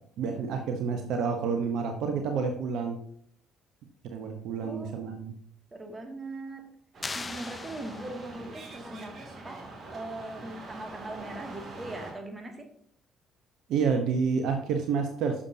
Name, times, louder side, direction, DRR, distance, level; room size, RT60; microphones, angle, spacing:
voice 1, 0.2-3.0 4.0-5.3 13.7-15.4, right 5 dB, 70° right, 5 dB, 0.9 m, -29 dB
voice 2, 4.6-5.2 5.7-6.6 7.1-9.6 9.9-12.7, right 2 dB, 30° right, 3 dB, 2.2 m, -40 dB
sound 1, 6.9-12.1, right 2 dB, 50° right, 2.5 m, -44 dB
sound 2, 7.0-8.5, left 3 dB, 30° left, 0.8 m, -39 dB
9.9 x 6.9 x 2.8 m, 0.64 s
hypercardioid pair, 55°, 0 cm